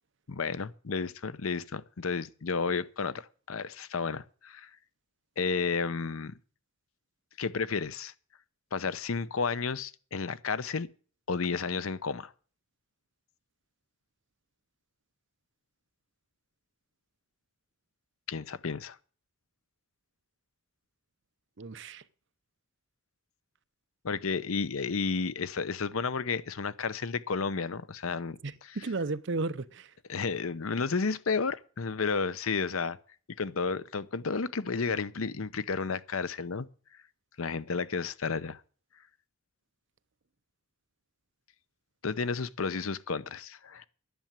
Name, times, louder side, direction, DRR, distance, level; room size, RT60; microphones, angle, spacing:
voice 1, 0.3-4.7 5.4-6.3 7.4-8.1 8.7-10.9 11.3-12.3 18.3-19.0 24.0-28.4 30.1-33.0 33.4-36.7 37.4-38.6 42.0-43.8, left 5 dB, 85° left, 0.7 m, -32 dB
voice 2, 21.6-22.1 28.4-30.0, right 3 dB, 60° right, 0.7 m, -34 dB
10.5 x 7.1 x 8.9 m
head